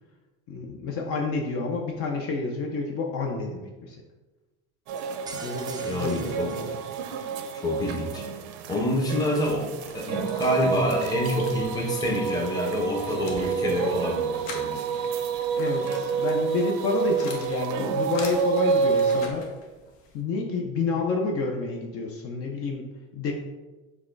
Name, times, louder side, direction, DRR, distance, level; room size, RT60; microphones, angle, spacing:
voice 1, 0.5-4.0 5.3-6.7 15.6-19.5 20.1-22.9 23.1-23.3, left 3 dB, 45° left, 1 dB, 0.6 m, -29 dB
sound 1, 4.9-19.3, right 6 dB, 80° right, 0.6 m, -29 dB
sound 2, 5.0-7.5, right 4 dB, 15° right, 0.3 m, -45 dB
voice 2, 5.8-6.5 7.6-8.2 8.7-14.7, left 1 dB, 10° left, -1 dB, 0.7 m, -27 dB
sound 3, 9.3-20.2, left 4 dB, 80° left, 1.0 m, -45 dB
4.8 x 2.2 x 4.4 m, 1.2 s
cardioid pair, 140°, 32 cm